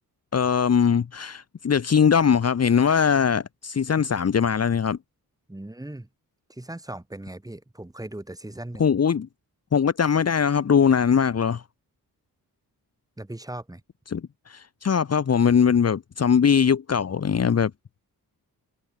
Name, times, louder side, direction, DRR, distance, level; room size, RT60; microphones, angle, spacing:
voice 1, 0.3-5.0 8.8-9.3 9.7-11.6 14.1-14.2 14.5-17.7, left 7 dB, 40° left, 1.2 m, -21 dB
voice 2, 5.5-6.1 6.5-8.9 13.2-13.8, right 1 dB, 10° right, 3.5 m, -38 dB
wide cardioid pair, 140°, 37 cm